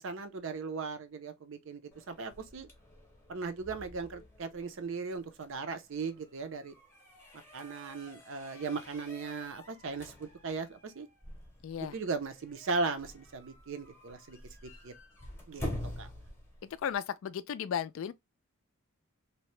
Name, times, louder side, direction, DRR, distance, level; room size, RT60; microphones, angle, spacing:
voice 1, 0.0-2.7 3.3-6.7 7.5-11.1 11.8-14.4 14.8-14.9 15.5-15.7 16.0-16.1, right 4 dB, 65° right, 0.5 m, -37 dB
sound 1, 1.9-16.9, left 1 dB, 10° left, 0.7 m, -47 dB
voice 2, 11.6-12.0 16.8-18.1, left 8 dB, 65° left, 0.3 m, -34 dB
2.7 x 2.1 x 3.1 m
head